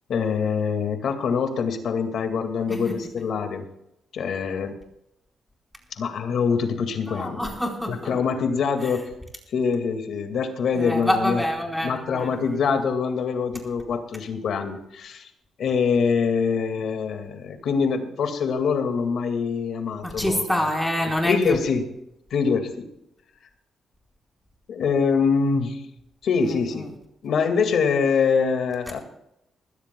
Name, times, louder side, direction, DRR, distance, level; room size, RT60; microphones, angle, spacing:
voice 1, 0.1-3.7 4.1-4.7 6.0-7.4 7.9-9.1 9.5-11.4 11.8-15.3 15.6-20.4 21.2-21.8 22.3-22.9 24.7-25.8 26.2-26.9 27.2-29.0, left 5 dB, 70° left, 6 dB, 1.9 m, -24 dB
voice 2, 7.0-8.1 8.8-8.9 10.7-12.6 20.0-21.6 26.4-26.9, equal, 5° left, 0 dB, 4.1 m, -27 dB
21.0 x 15.0 x 2.2 m, 0.82 s
cardioid pair, 105°, 0 cm